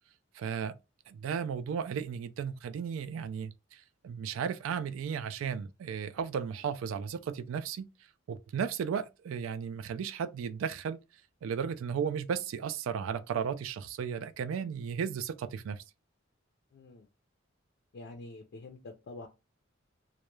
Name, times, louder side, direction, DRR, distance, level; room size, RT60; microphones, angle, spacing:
voice 1, 0.3-0.7 1.1-7.9 8.3-11.0 11.4-15.8, right 7 dB, 80° right, 0.3 m, -35 dB
voice 2, 16.7-17.1 17.9-19.3, left 2 dB, 55° left, 0.4 m, -46 dB
2.3 x 2.0 x 2.9 m
head